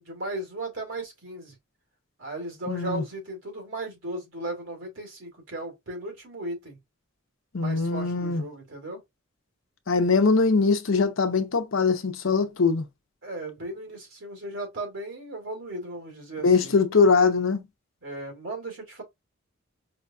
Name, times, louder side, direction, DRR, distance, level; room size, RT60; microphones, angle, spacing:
voice 1, 0.0-1.5 2.2-6.8 7.6-9.0 13.2-16.7 18.0-19.0, right 2 dB, 80° right, 2.0 m, -36 dB
voice 2, 2.7-3.0 7.5-8.4 9.9-12.8 16.4-17.6, left 4 dB, 85° left, 0.7 m, -22 dB
5.0 x 2.6 x 2.3 m
head